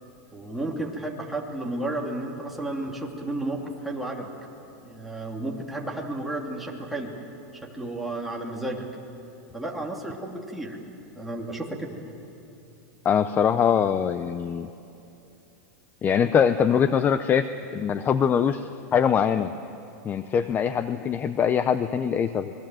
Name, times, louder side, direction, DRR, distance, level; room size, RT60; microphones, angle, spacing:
voice 1, 0.3-4.3 4.8-7.1 7.5-8.9 9.5-10.8 11.2-11.9, right 2 dB, ahead, -2 dB, 2.8 m, -32 dB
voice 2, 13.0-14.7 16.0-19.5 20.0-22.5, left 7 dB, 20° left, 11 dB, 0.6 m, -23 dB
27.5 x 21.5 x 7.7 m, 2.8 s
supercardioid pair, 145°, 9 cm